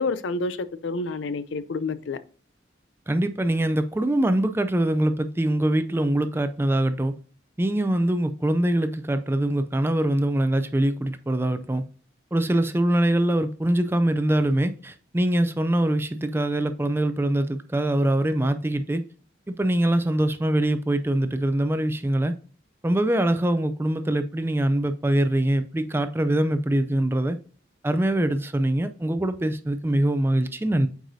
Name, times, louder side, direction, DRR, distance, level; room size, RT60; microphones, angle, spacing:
voice 1, 0.0-2.2, left 3 dB, 75° left, 0.5 m, -28 dB
voice 2, 3.1-7.1 7.6-11.8 12.3-19.0 19.5-22.3 22.8-27.4 27.8-30.9, right 1 dB, 10° right, 0.4 m, -23 dB
7.8 x 4.7 x 2.7 m
head